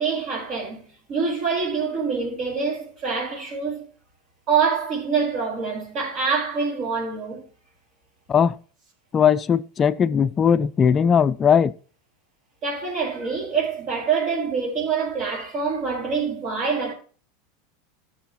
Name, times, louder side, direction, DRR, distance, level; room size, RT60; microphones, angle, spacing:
voice 1, 0.0-3.9 4.5-7.4 12.6-16.9, right 5 dB, 45° right, 4.6 m, -25 dB
voice 2, 9.1-11.7, left 7 dB, 30° left, 0.5 m, -19 dB
15.5 x 6.3 x 3.0 m
hypercardioid pair, 95°, 0 cm